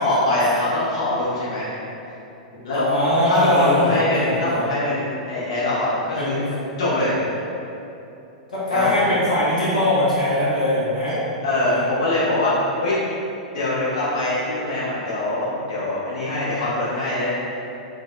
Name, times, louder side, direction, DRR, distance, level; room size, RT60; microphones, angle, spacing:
voice 1, 0.0-1.8 2.6-2.8 3.2-6.4 6.8-7.1 8.7-9.0 11.1-13.0 13.5-17.3, left 2 dB, 60° left, -10 dB, 0.9 m, -23 dB
voice 2, 2.7-4.6 6.2-6.7 8.5-11.1 11.6-11.8, left 1 dB, 85° left, -10 dB, 1.0 m, -21 dB
3.6 x 2.1 x 2.4 m, 2.8 s
figure-of-eight pair, 105°, 4 cm